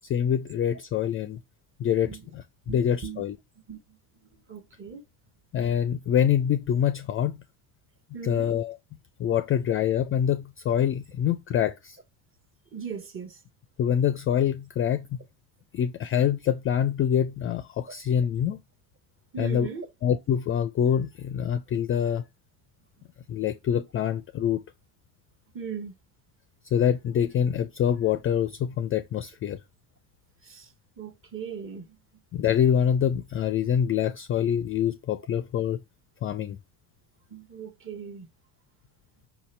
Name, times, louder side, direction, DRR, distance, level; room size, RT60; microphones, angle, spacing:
voice 1, 0.1-1.4 1.8-3.4 5.5-7.4 8.2-8.8 9.2-12.0 13.8-15.1 15.7-18.6 19.4-19.7 20.0-22.2 23.3-24.6 26.7-29.6 32.3-35.8 36.2-36.6, left 9 dB, 30° left, 0.4 m, -25 dB
voice 2, 2.7-3.2 3.7-3.8 4.5-5.0 8.1-8.5 12.7-13.4 17.9-18.0 19.3-19.9 25.5-25.9 30.4-30.7 31.0-32.0 37.3-38.3, right 6 dB, 25° right, 0.9 m, -38 dB
5.8 x 2.8 x 3.2 m
supercardioid pair, 90°, 47 cm